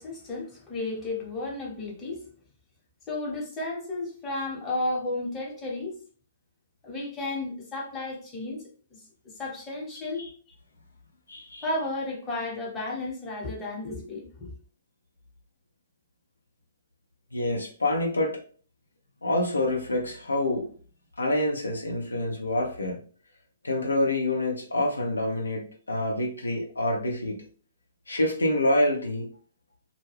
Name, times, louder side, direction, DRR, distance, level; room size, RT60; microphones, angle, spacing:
voice 1, 0.0-2.2 3.1-5.9 6.8-8.6 8.9-10.3 11.6-14.5, left 2 dB, 20° left, 1.1 m, -33 dB
voice 2, 11.3-11.7 17.3-18.4 19.2-20.7 21.2-23.0 23.6-27.4 28.1-29.2, left 1 dB, 85° left, 0.7 m, -27 dB
2.3 x 2.2 x 3.3 m
figure-of-eight pair, 120°, 0 cm